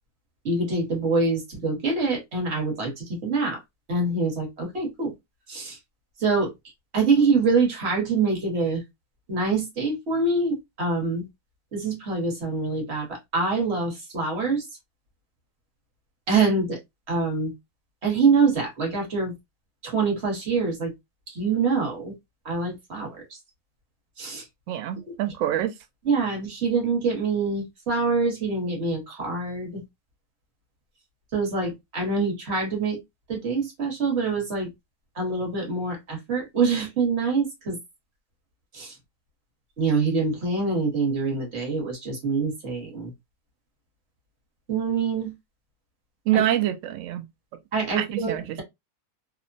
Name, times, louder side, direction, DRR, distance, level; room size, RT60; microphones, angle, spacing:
voice 1, 0.4-3.6 3.9-5.1 5.5-5.8 6.2-6.5 6.9-8.8 9.3-11.3 11.7-14.6 16.3-16.8 17.1-17.5 18.0-19.3 19.8-20.9 21.3-22.1 22.4-23.1 24.2-24.4 26.1-29.8 31.3-33.0 33.3-34.7 35.2-37.8 38.7-38.9 39.8-43.1 44.7-45.3 46.3-46.4 47.7-48.6, right 4 dB, 45° right, 1.3 m, -25 dB
voice 2, 24.7-25.7 46.3-47.2 48.0-48.6, right 12 dB, 70° right, 0.8 m, -25 dB
2.9 x 2.1 x 2.4 m
omnidirectional pair, 1.7 m